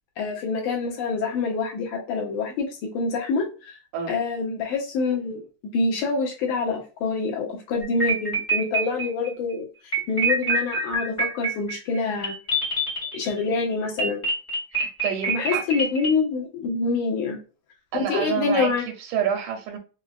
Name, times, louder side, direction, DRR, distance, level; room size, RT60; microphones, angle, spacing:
voice 1, 0.2-2.7 2.9-3.8 4.1-9.6 10.1-12.3 13.1-14.2 15.3-17.4 17.9-18.8, left 4 dB, 80° left, 2.2 m, -26 dB
sound 1, 7.8-9.3 9.9-13.5 14.0-16.1, right 2 dB, 25° left, 0.9 m, -26 dB
voice 2, 14.7-15.6 17.9-18.7 19.0-19.8, right 8 dB, 85° right, 2.0 m, -28 dB
5.4 x 2.1 x 2.3 m
omnidirectional pair, 3.6 m